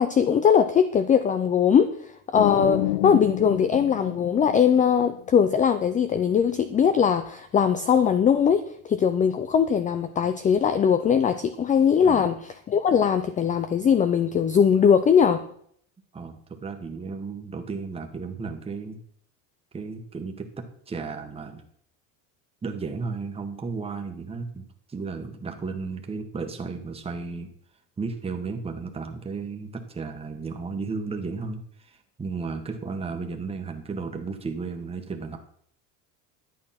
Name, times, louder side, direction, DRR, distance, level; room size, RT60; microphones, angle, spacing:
voice 1, 0.0-1.9 2.3-15.4, left 7 dB, 20° left, 11 dB, 0.5 m, -21 dB
sound 1, 2.4-5.2, left 18 dB, 80° left, 0.6 m, -29 dB
voice 2, 12.0-12.3 16.1-19.0 19.7-21.6 22.6-27.5 28.0-35.4, right 4 dB, 15° right, 4 dB, 1.4 m, -34 dB
11.0 x 8.6 x 5.8 m, 0.64 s
cardioid pair, 140°, 37 cm